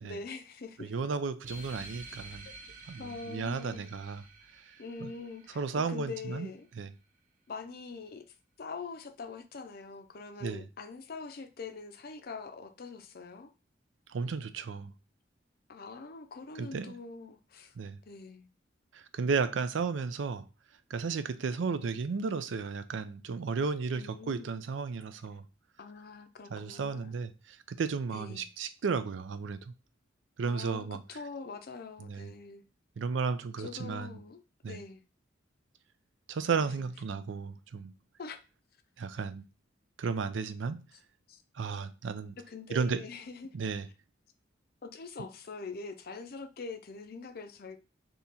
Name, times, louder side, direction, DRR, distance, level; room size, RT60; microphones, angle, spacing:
voice 1, 0.0-0.9 3.0-3.9 4.8-6.7 7.5-8.2 8.6-13.5 15.7-17.7 18.0-18.5 23.9-24.5 25.8-27.1 28.1-28.5 30.4-32.6 33.6-34.4 34.7-35.0 36.6-36.9 38.2-38.4 41.3-41.4 42.4-43.5 44.8-47.8, left 4 dB, 50° left, 0.5 m, -44 dB
voice 2, 0.8-2.5 2.9-4.2 5.0-5.1 5.6-6.5 6.8-6.9 10.4-10.7 14.1-14.9 16.6-16.9 17.8-18.0 18.9-20.5 20.9-25.4 26.5-29.7 30.4-31.0 32.0-32.3 33.0-34.1 34.6-34.8 36.3-37.9 39.0-39.4 40.0-40.8 41.6-42.4 42.7-43.0 43.5-43.9, right 5 dB, 75° right, 0.4 m, -34 dB
sound 1, 1.4-6.4, right 2 dB, 45° right, 0.8 m, -50 dB
3.6 x 2.8 x 4.1 m
head